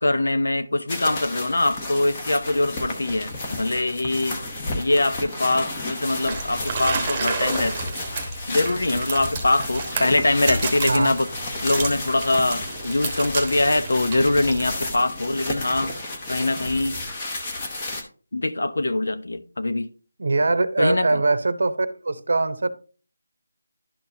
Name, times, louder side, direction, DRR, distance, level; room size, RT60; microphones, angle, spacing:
voice 1, 0.0-4.4 4.7-7.8 8.5-11.3 11.6-15.9 16.3-17.0 18.3-19.9 20.8-21.2, left 2 dB, 75° left, 0.8 m, -23 dB
sound 1, 0.9-18.0, left 2 dB, 20° left, 0.9 m, -32 dB
sound 2, 6.2-14.7, right 3 dB, 10° right, 1.2 m, -31 dB
voice 2, 20.2-22.7, right 3 dB, 65° right, 0.8 m, -22 dB
11.5 x 4.4 x 2.7 m
figure-of-eight pair, 175°, 0 cm